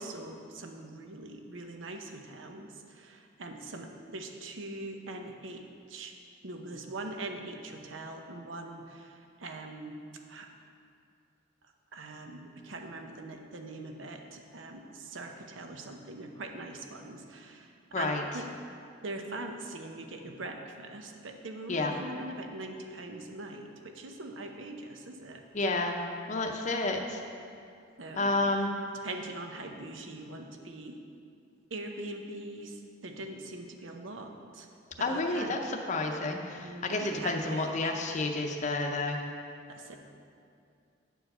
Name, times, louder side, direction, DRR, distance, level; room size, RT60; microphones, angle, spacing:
voice 1, 0.0-6.2 6.4-10.5 11.9-18.5 19.0-25.5 28.0-28.7 29.0-31.0 31.7-34.7 35.0-35.6 36.6-37.7 39.7-40.0, right 2 dB, 80° right, 4 dB, 0.8 m, -42 dB
voice 2, 17.9-18.2 21.7-21.9 25.5-26.0 26.3-27.2 28.2-28.7 35.0-35.6 35.9-39.2, left 2 dB, 40° left, 2 dB, 0.7 m, -30 dB
9.2 x 4.7 x 6.6 m, 2.4 s
head